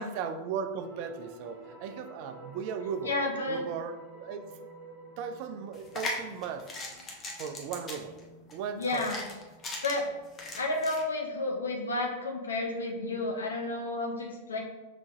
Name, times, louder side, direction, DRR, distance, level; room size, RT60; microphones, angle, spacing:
voice 1, 0.0-3.1 3.5-4.5 5.2-6.7 7.4-8.1 8.5-9.1, right 6 dB, 45° right, 8 dB, 0.4 m, -37 dB
sound 1, 0.8-6.7, right 3 dB, 20° right, 1.4 m, -49 dB
voice 2, 3.0-3.6 8.7-9.3 9.8-10.0 10.6-14.6, left 2 dB, 70° left, 1 dB, 0.8 m, -31 dB
sound 2, 5.7-11.0, left 2 dB, 25° left, 0.9 m, -39 dB
5.7 x 3.7 x 2.5 m, 1.2 s
figure-of-eight pair, 90°, 0 cm